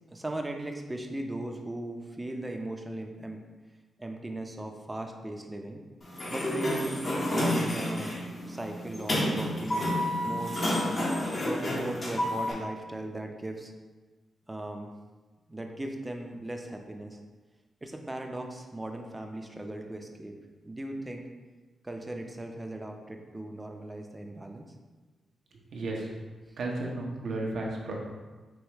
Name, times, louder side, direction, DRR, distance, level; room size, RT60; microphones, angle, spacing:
voice 1, 0.1-3.4 4.0-5.8 6.3-10.0 10.2-10.9 11.4-13.7 14.5-14.9 15.5-17.2 17.8-20.3 20.6-21.3 21.8-24.7, right 1 dB, 20° right, 3 dB, 0.6 m, -38 dB
Sliding door, 6.0-12.5, left 1 dB, 50° left, 1.2 m, -30 dB
voice 2, 25.7-26.1 26.6-27.9, right 2 dB, 70° right, -1 dB, 0.8 m, -33 dB
4.8 x 3.1 x 3.0 m, 1.3 s
supercardioid pair, 45°, 0 cm